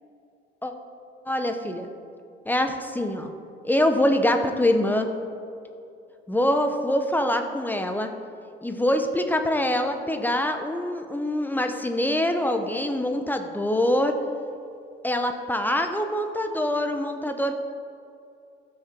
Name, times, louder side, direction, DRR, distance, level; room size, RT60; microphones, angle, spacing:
voice 1, 1.3-1.9 2.5-3.3 3.6-5.1 6.3-8.1 8.6-14.2 15.0-17.5, left 1 dB, 10° left, 6 dB, 0.9 m, -24 dB
15.0 x 6.5 x 4.5 m, 2.5 s
cardioid pair, 95°, 21 cm